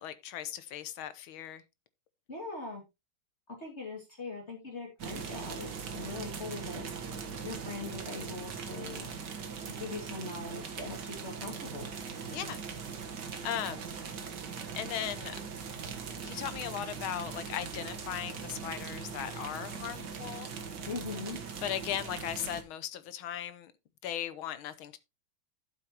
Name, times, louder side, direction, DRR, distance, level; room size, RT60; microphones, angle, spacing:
voice 1, 0.0-1.6 12.3-12.6 13.4-13.9 14.8-15.4 16.2-20.5 21.6-23.7 24.0-25.0, left 11 dB, 90° left, 1.7 m, -37 dB
voice 2, 2.3-2.8 3.5-6.9 7.4-9.1 9.7-11.9 20.9-21.4, left 3 dB, 35° left, 2.5 m, -41 dB
sound 1, 5.0-22.6, right 6 dB, 60° right, 1.9 m, -40 dB
12.0 x 7.5 x 2.9 m
omnidirectional pair, 2.2 m